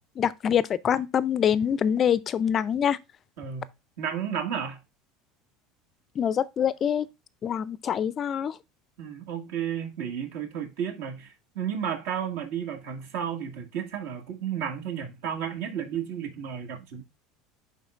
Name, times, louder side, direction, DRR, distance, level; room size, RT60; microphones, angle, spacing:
voice 1, 0.2-3.0 6.2-7.1 7.4-8.6, left 8 dB, 30° left, 0.4 m, -25 dB
voice 2, 3.4-3.7 4.0-4.8 9.0-17.0, right 8 dB, 75° right, 2.0 m, -32 dB
11.0 x 3.8 x 2.4 m
cardioid pair, 145°, 0 cm